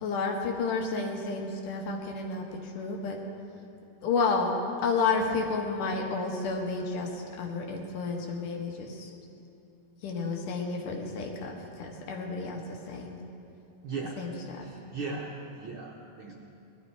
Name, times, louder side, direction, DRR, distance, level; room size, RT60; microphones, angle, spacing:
voice 1, 0.0-3.2 4.0-4.5 4.8-9.1 10.0-12.6 12.9-13.2 14.2-14.3 14.6-14.7, left 4 dB, 90° left, 1 dB, 3.0 m, -31 dB
voice 2, 13.8-14.2 14.6-16.3, right 4 dB, 65° right, -2 dB, 1.3 m, -37 dB
19.5 x 12.5 x 4.6 m, 2.8 s
omnidirectional pair, 3.6 m